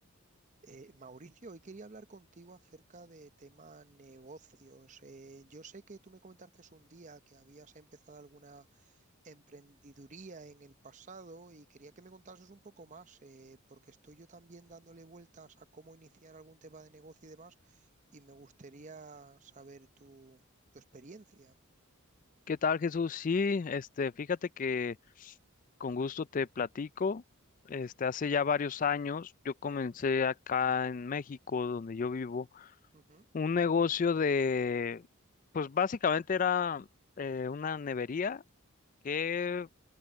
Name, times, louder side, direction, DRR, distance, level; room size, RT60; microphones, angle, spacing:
voice 1, 0.6-9.0 9.2-17.9 18.1-20.4 20.7-21.6 32.9-33.3, right 3 dB, 35° right, 0.7 m, -52 dB
voice 2, 22.5-25.3 25.8-27.2 27.7-32.7 33.3-35.0 35.5-36.9 37.2-38.4 39.0-39.7, left 5 dB, 40° left, 0.3 m, -31 dB
open air
head